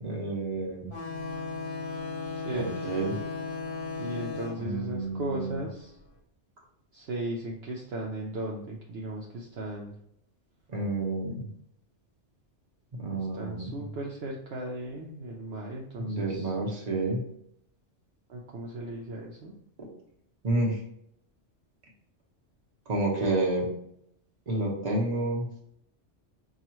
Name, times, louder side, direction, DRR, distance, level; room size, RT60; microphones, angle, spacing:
voice 1, 0.0-0.9 2.5-3.2 4.6-5.6 10.7-11.5 13.0-13.9 16.0-17.2 19.8-19.9 20.4-20.8 22.9-23.7 24.5-25.5, right 2 dB, 40° right, -1 dB, 1.0 m, -30 dB
sound 1, 0.9-6.1, left 4 dB, 55° left, 0.8 m, -37 dB
voice 2, 4.0-5.9 6.9-10.0 13.1-16.5 18.3-19.5, right 1 dB, 65° right, -2 dB, 0.8 m, -36 dB
4.8 x 2.4 x 2.9 m, 0.71 s
omnidirectional pair, 1.2 m